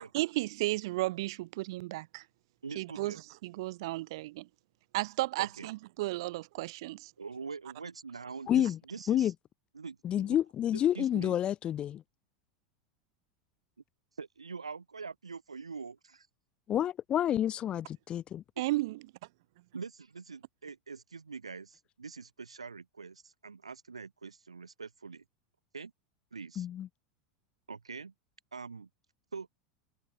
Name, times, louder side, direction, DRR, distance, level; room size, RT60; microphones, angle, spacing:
voice 1, 0.1-2.2 2.7-3.1 3.4-4.5 4.9-6.9 18.6-19.0, right 19 dB, 55° right, 1.0 m, -33 dB
voice 2, 2.6-3.2 5.4-5.7 7.2-9.3 9.7-10.4 10.7-11.4 14.2-16.3 18.6-18.7 19.7-25.2 25.7-25.9 26.3-26.7 27.7-28.1 28.5-28.9 29.3-29.5, right 5 dB, 80° right, 3.7 m, -44 dB
voice 3, 8.5-8.8 9.1-9.3 10.0-12.0 16.7-18.4 26.6-26.9, left 10 dB, 30° left, 3.3 m, -29 dB
figure-of-eight pair, 85°, 3 cm